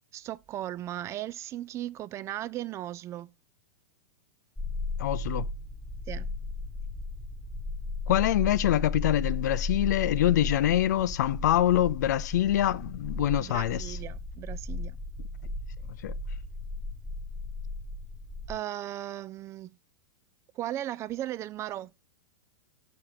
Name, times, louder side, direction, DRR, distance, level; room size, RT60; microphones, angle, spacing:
voice 1, 0.1-3.3 6.1-6.3 13.4-15.0 18.5-19.8 20.5-21.9, right 13 dB, 30° right, 0.3 m, -37 dB
sound 1, 4.6-18.6, left 3 dB, 5° left, 1.3 m, -35 dB
voice 2, 5.0-5.5 8.1-14.0 15.9-16.1, left 12 dB, 65° left, 0.5 m, -25 dB
5.7 x 4.2 x 4.9 m
hypercardioid pair, 105°, 10 cm